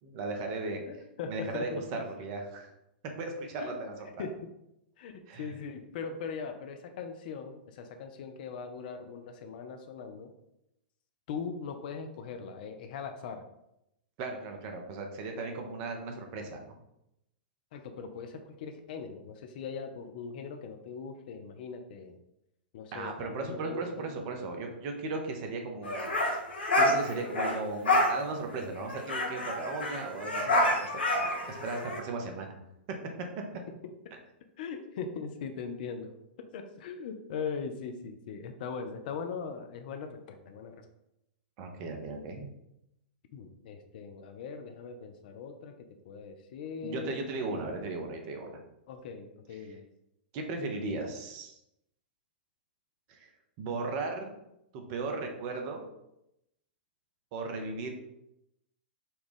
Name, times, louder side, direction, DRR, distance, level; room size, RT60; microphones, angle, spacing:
voice 1, 0.0-0.8 1.3-2.7 3.2-4.1 5.3-5.5 14.2-16.8 22.9-26.4 26.8-32.6 41.6-42.5 46.8-48.5 50.3-51.6 53.1-53.3 53.6-54.4 54.7-55.8 57.3-57.9, right 3 dB, 45° right, 3 dB, 0.8 m, -36 dB
voice 2, 0.9-1.8 3.6-3.8 4.2-4.3 5.0-10.3 11.3-13.4 17.7-22.2 22.7-24.3 34.6-36.1 36.5-40.8 43.3-45.7 46.0-47.6 48.9-49.8, left 5 dB, 60° left, 6 dB, 0.5 m, -40 dB
sound 1, 25.8-27.6 27.9-28.1 28.5-28.6 28.8-32.0, left 1 dB, 80° left, 0.9 m, -28 dB
4.2 x 2.3 x 3.4 m, 0.84 s
hypercardioid pair, 110°, 5 cm